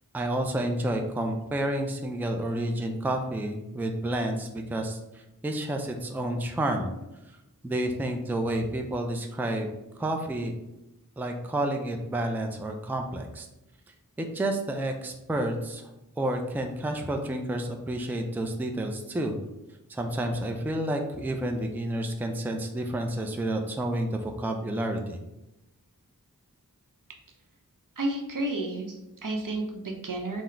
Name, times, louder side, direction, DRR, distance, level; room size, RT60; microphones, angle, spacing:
voice 1, 0.1-6.9 7.6-9.7 10.0-10.5 11.2-13.5 14.2-19.4 19.9-25.2, right 1 dB, 5° right, 4 dB, 0.4 m, -30 dB
voice 2, 28.0-30.4, right 2 dB, 65° right, 1 dB, 0.7 m, -31 dB
3.8 x 2.1 x 4.3 m, 0.95 s
wide cardioid pair, 40°, 35 cm